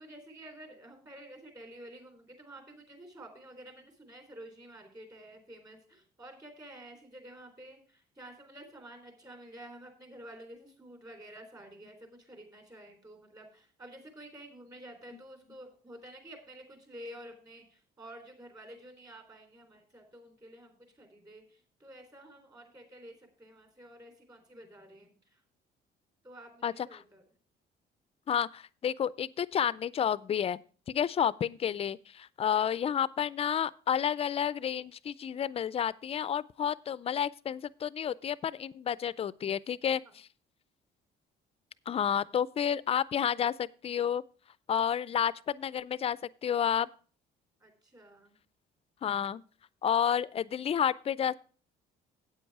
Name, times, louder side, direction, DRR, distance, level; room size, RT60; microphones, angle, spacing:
voice 1, 0.0-25.4 26.2-27.2 40.0-40.1 47.6-48.4, right 1 dB, 20° right, 3.4 m, -50 dB
voice 2, 26.6-27.0 28.3-30.6 30.9-40.3 41.9-44.2 44.7-46.9 49.0-49.4 49.8-51.3, left 8 dB, 35° left, 0.4 m, -30 dB
8.6 x 8.5 x 4.7 m
cardioid pair, 110°, 17 cm